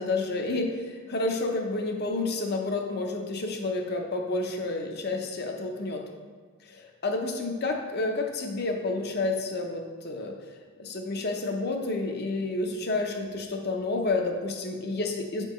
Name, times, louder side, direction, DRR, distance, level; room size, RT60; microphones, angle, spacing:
voice 1, 0.0-6.0 6.6-10.4 10.8-15.4, left 2 dB, 50° left, 3 dB, 0.7 m, -30 dB
7.2 x 4.4 x 3.1 m, 1.5 s
head